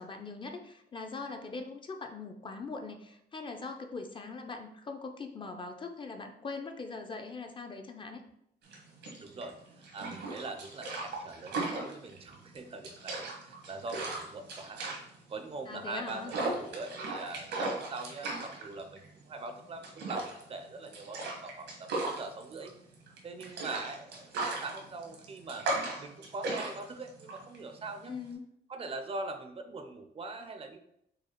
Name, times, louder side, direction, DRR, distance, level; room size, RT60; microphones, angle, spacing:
voice 1, 0.0-8.2 15.7-16.3 28.1-28.4, left 4 dB, 30° left, 5 dB, 0.5 m, -41 dB
sound 1, 8.6-28.3, right 2 dB, 85° right, 1.3 m, -37 dB
voice 2, 9.2-14.8 15.3-22.8 23.2-28.2 28.7-30.8, right 3 dB, 35° right, 7 dB, 0.5 m, -42 dB
4.8 x 2.3 x 4.3 m, 0.74 s
cardioid pair, 130°, 17 cm